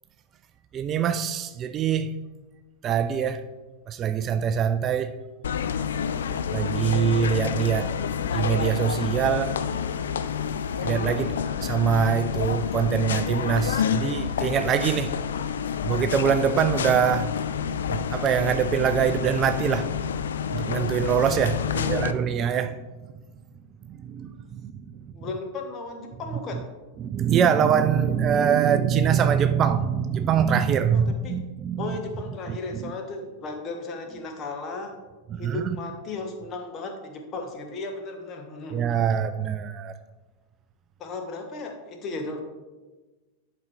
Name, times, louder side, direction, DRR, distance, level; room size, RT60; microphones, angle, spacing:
voice 1, 0.7-2.2 2.8-3.4 3.9-5.2 6.5-8.0 8.3-9.6 10.8-15.2 15.8-17.4 17.9-19.9 20.5-21.6 21.9-22.8 23.9-25.3 27.0-32.0 32.5-32.9 35.3-35.8 38.7-40.0, right 8 dB, 30° right, 0.3 m, -24 dB
sound 1, 5.4-22.1, left 7 dB, 65° left, 0.3 m, -28 dB
voice 2, 21.5-22.0 25.1-26.7 30.9-31.4 31.8-35.0 35.4-38.8 41.0-42.4, left 3 dB, 30° left, 1.1 m, -35 dB
11.0 x 5.1 x 3.2 m
figure-of-eight pair, 90°, 0 cm